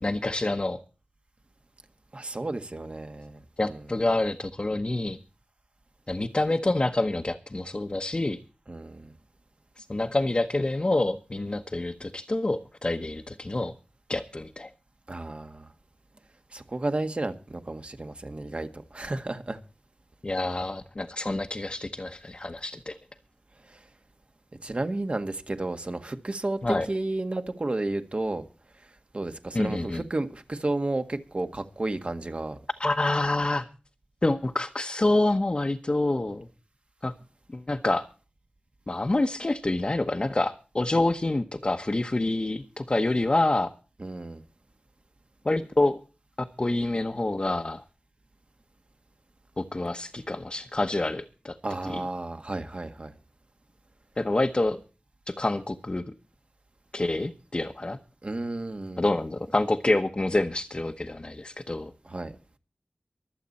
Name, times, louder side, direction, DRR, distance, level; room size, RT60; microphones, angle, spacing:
voice 1, 0.0-0.8 3.6-5.2 6.1-8.4 9.8-13.7 14.1-14.7 20.2-22.9 26.6-26.9 29.5-30.0 32.8-33.7 34.2-36.5 37.0-37.1 37.5-38.1 38.9-43.7 45.4-46.0 46.4-47.8 49.6-51.6 51.9-52.0 54.2-54.8 55.3-56.1 56.9-58.0 59.0-61.9, left 2 dB, 35° left, 1.1 m, -27 dB
voice 2, 2.1-3.4 3.6-4.0 8.7-9.1 15.1-15.6 16.5-19.6 24.6-28.4 29.1-32.6 44.0-44.4 51.6-53.1 58.2-59.0 62.1-62.3, right 2 dB, 45° right, 1.8 m, -32 dB
24.5 x 8.3 x 4.2 m
wide cardioid pair, 75°, 3 cm